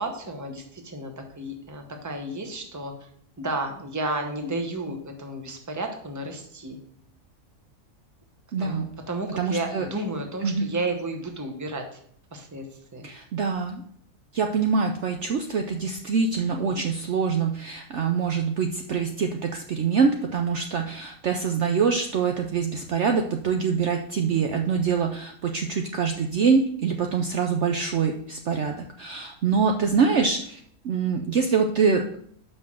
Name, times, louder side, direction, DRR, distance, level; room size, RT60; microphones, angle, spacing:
voice 1, 0.0-3.1 3.4-6.8 8.6-12.0 12.3-13.1, right 2 dB, 15° right, 4 dB, 0.8 m, -32 dB
voice 2, 8.5-8.9 9.4-9.9 10.4-10.7 13.0-13.8 14.3-30.6 30.8-32.2, right 5 dB, 60° right, 4 dB, 0.8 m, -25 dB
5.8 x 5.3 x 6.2 m, 0.63 s
omnidirectional pair, 1.6 m